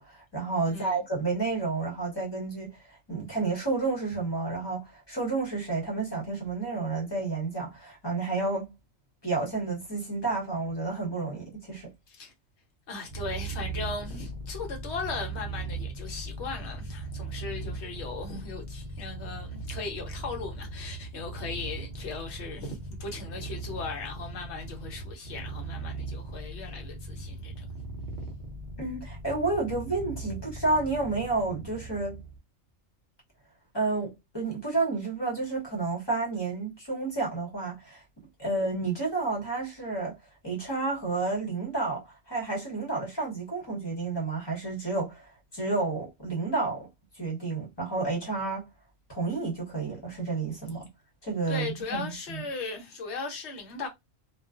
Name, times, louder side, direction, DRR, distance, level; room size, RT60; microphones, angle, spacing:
voice 1, 0.0-2.8 3.1-8.7 9.2-11.9 28.8-32.2 33.7-38.0 38.4-40.2 40.4-46.9 47.2-48.7 49.1-50.9 51.2-52.4, right 3 dB, 20° left, 0.9 m, -30 dB
voice 2, 0.7-1.0 12.1-12.3 12.9-27.8 51.5-53.9, left 4 dB, 60° left, 1.0 m, -38 dB
Purr, 13.1-32.4, right 2 dB, 50° right, 0.6 m, -39 dB
2.4 x 2.4 x 2.4 m
omnidirectional pair, 1.4 m